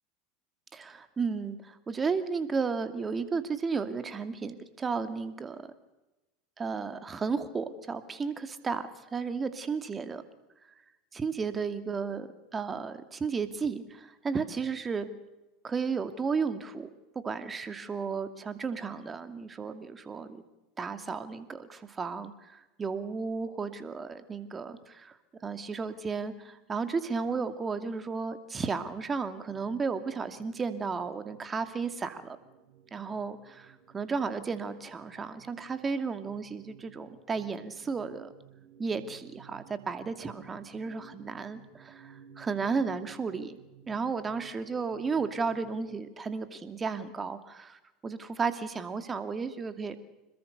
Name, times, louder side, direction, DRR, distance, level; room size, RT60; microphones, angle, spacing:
voice 1, 0.7-5.7 6.6-10.2 11.1-15.1 15.6-16.9 17.1-20.4 20.8-25.2 25.4-32.4 32.9-38.3 38.8-43.6 43.9-50.0, right 5 dB, 25° right, 10 dB, 2.5 m, -33 dB
sound 1, 29.5-46.1, right 9 dB, 55° right, 2.9 m, -56 dB
27.0 x 21.5 x 6.7 m, 1.0 s
hypercardioid pair, 80°, 0 cm